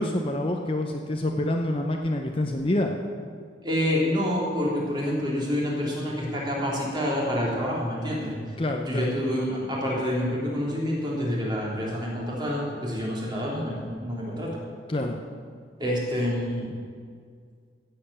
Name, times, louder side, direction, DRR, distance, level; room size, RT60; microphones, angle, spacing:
voice 1, 0.0-2.9 8.6-9.1 14.9-15.2, left 1 dB, 30° left, 3 dB, 0.7 m, -27 dB
voice 2, 3.6-8.3 8.8-14.5 15.8-16.7, equal, 25° right, -4 dB, 3.5 m, -27 dB
15.5 x 7.9 x 7.0 m, 2.1 s
head